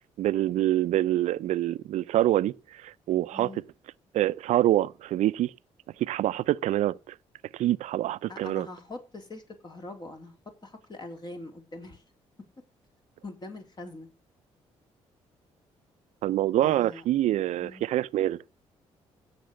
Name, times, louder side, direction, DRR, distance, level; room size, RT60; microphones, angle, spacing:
voice 1, 0.2-3.5 4.1-5.5 6.0-7.1 7.5-8.7 16.2-18.4, right 13 dB, 80° right, 0.6 m, -26 dB
voice 2, 3.3-3.6 8.3-10.4 10.6-12.0 13.2-14.1 16.6-17.0 17.6-17.8, left 2 dB, 35° left, 3.7 m, -42 dB
16.0 x 7.5 x 6.5 m
supercardioid pair, 70°, 12 cm